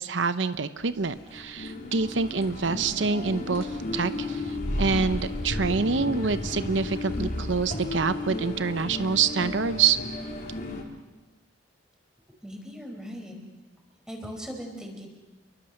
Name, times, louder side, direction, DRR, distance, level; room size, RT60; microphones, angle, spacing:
voice 1, 0.0-10.0, right 5 dB, 80° right, 12 dB, 0.8 m, -26 dB
sound 1, 0.8-10.8, left 1 dB, 50° left, 4.0 m, -33 dB
voice 2, 12.4-13.3 14.1-15.1, equal, 5° right, 2 dB, 4.8 m, -39 dB
28.5 x 23.5 x 6.6 m, 1.1 s
head